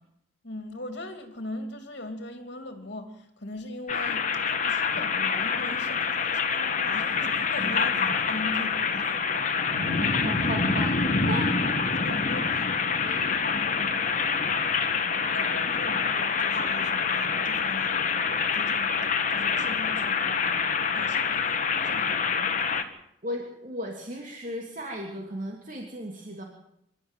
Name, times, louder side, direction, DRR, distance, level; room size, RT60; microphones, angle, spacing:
voice 1, 0.4-9.2 11.9-13.2 15.3-22.9, left 1 dB, 55° left, 6 dB, 2.8 m, -40 dB
sound 1, 3.9-22.8, left 5 dB, 40° left, 1.9 m, -26 dB
voice 2, 7.6-8.2 9.7-11.0 11.2-11.8 12.1-12.2 13.0-13.3 14.2-14.4 14.7-14.9 15.4-15.5 23.2-26.4, right 1 dB, 40° right, 1 dB, 2.9 m, -36 dB
26.5 x 13.0 x 9.1 m, 0.78 s
head